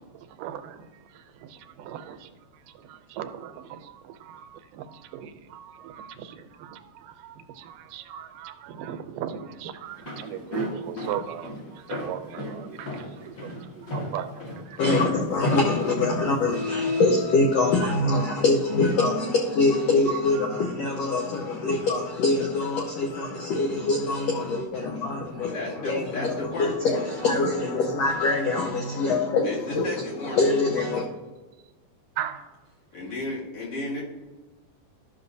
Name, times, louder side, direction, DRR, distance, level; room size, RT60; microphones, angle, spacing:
voice 1, 0.0-15.2 17.6-18.0 20.1-21.5 32.2-32.5, right 9 dB, 85° right, 2.2 m, -38 dB
Walk footsteps, 9.9-17.0, equal, 40° left, 1.7 m, -34 dB
voice 2, 14.8-29.8 30.3-31.0, left 3 dB, 75° left, 1.5 m, -24 dB
voice 3, 25.5-27.1 29.4-30.5 32.9-34.0, left 2 dB, 55° left, 3.5 m, -33 dB
13.0 x 6.0 x 2.6 m
omnidirectional pair, 3.8 m